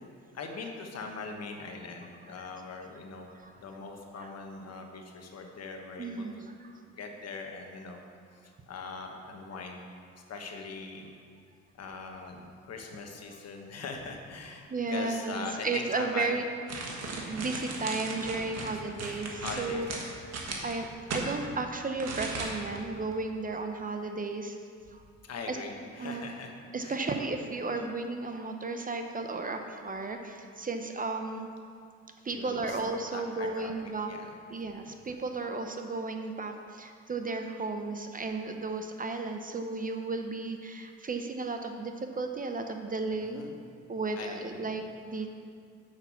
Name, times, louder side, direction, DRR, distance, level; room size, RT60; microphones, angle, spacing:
voice 1, 0.0-6.5 6.9-8.0 8.3-9.8 10.3-11.1 11.8-16.4 16.7-17.0 18.5-18.8 19.4-20.1 25.2-27.2 32.3-32.8 33.1-33.7 34.1-34.4 34.7-35.0 43.2-43.6 44.1-44.7, left 4 dB, 55° left, 3 dB, 1.3 m, -41 dB
voice 2, 6.0-6.4 6.6-6.7 14.7-16.4 17.3-19.9 20.4-20.9 21.1-24.6 24.9-25.0 25.5-25.6 25.9-26.2 26.7-31.5 32.2-34.1 34.5-43.5 43.9-45.3, right 3 dB, 30° right, 5 dB, 0.7 m, -34 dB
sound 1, 16.7-21.3 22.0-22.8 23.1-23.2, right 3 dB, 60° right, 1.6 m, -37 dB
6.7 x 5.8 x 7.1 m, 2.3 s
cardioid pair, 90°, 30 cm